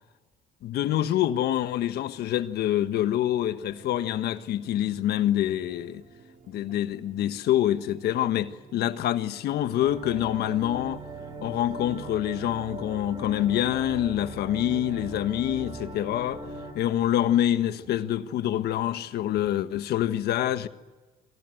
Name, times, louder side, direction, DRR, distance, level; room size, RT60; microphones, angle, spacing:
voice 1, 0.6-6.0 6.5-11.0 11.4-16.4 16.7-20.7, left 12 dB, 70° left, 1.4 m, -26 dB
sound 1, 3.7-19.7, right 5 dB, 50° right, 5.1 m, -54 dB
sound 2, 9.8-16.7, right 2 dB, 25° right, 6.3 m, -39 dB
27.0 x 24.0 x 7.9 m
cardioid pair, 110°, 17 cm